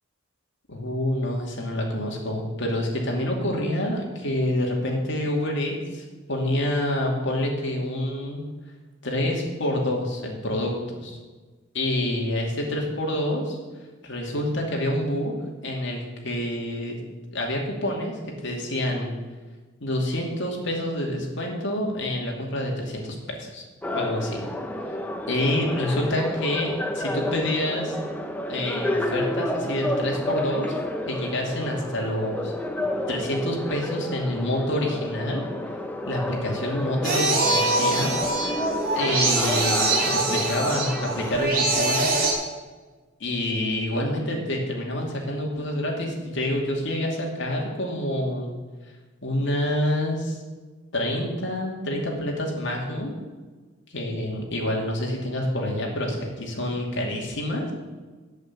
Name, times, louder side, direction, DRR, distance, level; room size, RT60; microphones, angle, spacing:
voice 1, 0.7-8.5 9.0-11.2 11.7-13.6 14.0-15.4 15.6-17.0 17.3-19.1 19.8-23.6 23.9-24.4 25.3-28.0 28.5-30.8 31.1-32.5 33.1-35.4 36.1-38.1 38.9-42.1 43.2-48.5 49.2-50.4 50.9-53.1 53.9-57.7, left 1 dB, 65° left, 0 dB, 2.5 m, -27 dB
sound 1, 23.8-41.5, left 1 dB, 10° left, 0.7 m, -30 dB
sound 2, 37.0-42.3, right 2 dB, 45° right, 2.4 m, -24 dB
8.3 x 8.2 x 7.3 m, 1.3 s
head